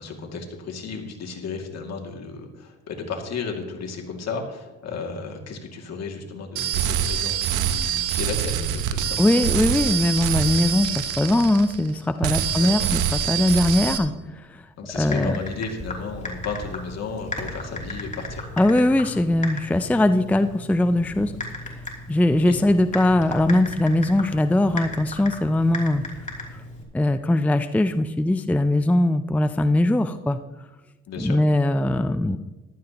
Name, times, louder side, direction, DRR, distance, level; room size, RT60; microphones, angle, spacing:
voice 1, 0.0-9.5 12.4-12.9 14.8-18.5 22.5-22.6 31.1-31.4, left 4 dB, 60° left, 1 dB, 2.4 m, -34 dB
sound 1, 6.6-11.9 12.2-14.0, right 9 dB, 90° right, 0.9 m, -25 dB
voice 2, 9.2-14.6 14.9-15.4 18.6-21.3 22.1-26.0 26.9-30.4 31.2-32.4, left 1 dB, 5° left, 10 dB, 0.4 m, -21 dB
Typing, 14.9-26.8, left 2 dB, 25° left, 3.0 m, -36 dB
14.5 x 12.5 x 3.0 m, 1.1 s
cardioid pair, 80°, 30 cm